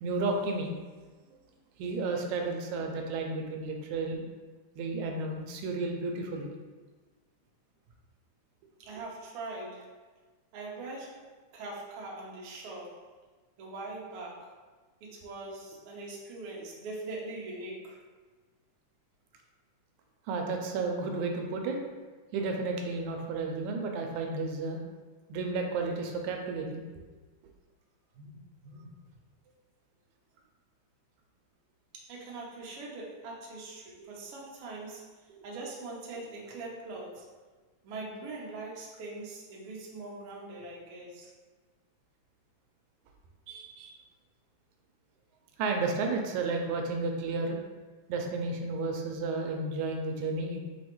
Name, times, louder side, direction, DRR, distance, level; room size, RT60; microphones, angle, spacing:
voice 1, 0.0-0.7 1.8-4.2 4.8-6.5 8.9-9.0 20.3-21.8 22.3-24.8 25.3-26.8 28.2-28.3 28.6-28.9 35.4-35.5 43.5-44.0 45.6-47.6 48.1-50.6, right 3 dB, 85° right, 2 dB, 2.0 m, -32 dB
voice 2, 8.8-10.1 10.5-13.0 13.6-14.6 15.0-18.1 31.9-37.3 37.8-41.3, right 2 dB, 65° right, -3 dB, 1.5 m, -42 dB
5.8 x 3.0 x 3.0 m, 1.3 s
omnidirectional pair, 3.3 m